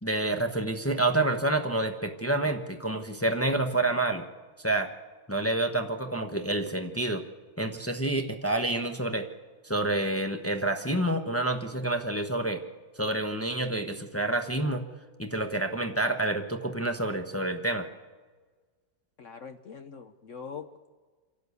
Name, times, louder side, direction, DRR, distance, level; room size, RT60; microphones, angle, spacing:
voice 1, 0.0-4.3 4.6-4.9 5.3-7.2 7.6-9.3 9.6-12.6 13.0-14.8 15.2-17.9, right 2 dB, 15° left, 4 dB, 0.6 m, -28 dB
voice 2, 19.2-20.9, left 6 dB, 60° left, 9 dB, 0.8 m, -43 dB
27.0 x 12.0 x 8.2 m, 1.4 s
omnidirectional pair, 2.1 m